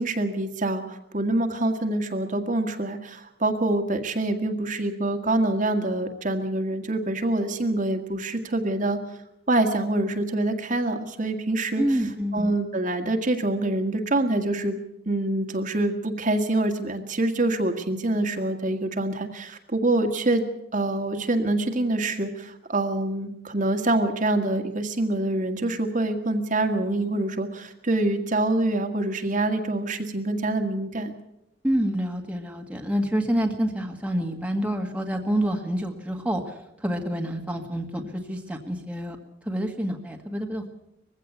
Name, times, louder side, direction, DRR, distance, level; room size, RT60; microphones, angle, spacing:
voice 1, 0.0-9.0 9.5-12.0 12.3-14.8 15.1-20.5 20.7-31.1, right 2 dB, 40° right, 5 dB, 1.8 m, -25 dB
voice 2, 11.8-12.5 31.6-36.4 36.8-38.0 38.3-39.2 39.4-40.7, equal, 5° right, 2 dB, 1.7 m, -27 dB
21.0 x 16.0 x 8.2 m, 0.83 s
head